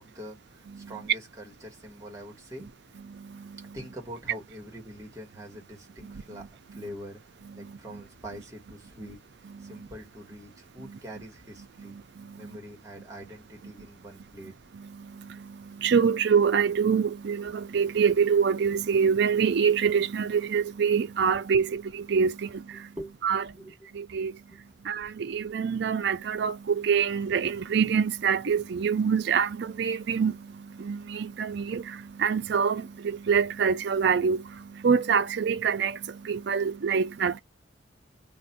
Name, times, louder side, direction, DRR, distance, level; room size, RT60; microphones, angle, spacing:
voice 1, 0.0-3.0 3.6-7.2 7.5-12.0 12.4-14.6 22.7-23.7 24.5-24.6, equal, 15° right, 1.3 m, -44 dB
voice 2, 15.8-22.6 23.2-23.4 24.0-24.3 24.9-30.4 30.8-34.4 34.8-36.0 36.3-37.4, right 6 dB, 60° right, 0.4 m, -25 dB
2.5 x 2.2 x 4.0 m
head